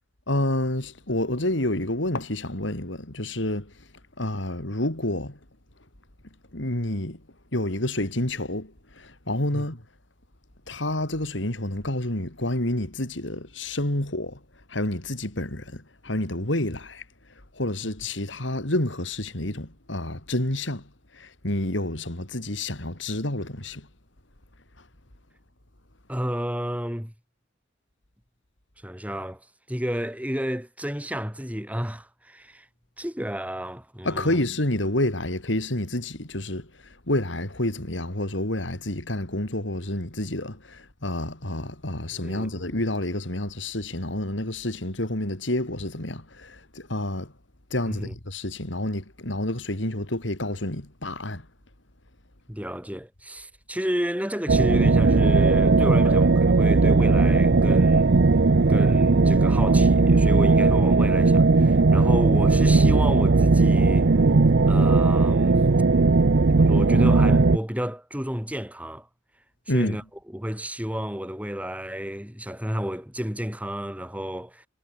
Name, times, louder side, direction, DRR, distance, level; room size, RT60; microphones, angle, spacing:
voice 1, 0.3-3.9 4.2-5.4 6.5-7.2 7.5-9.8 10.7-14.4 14.7-17.0 17.5-23.9 34.0-47.3 47.7-51.5 69.7-70.0, left 1 dB, 75° left, 4.0 m, -29 dB
voice 2, 26.1-27.1 28.8-32.7 33.0-34.4 42.2-42.5 47.9-48.1 52.5-58.1 58.7-64.1 64.7-65.6 66.5-69.1 69.7-70.0 70.3-74.7, equal, 10° right, 5.7 m, -31 dB
sound 1, 54.5-67.6, right 3 dB, 65° right, 0.7 m, -18 dB
head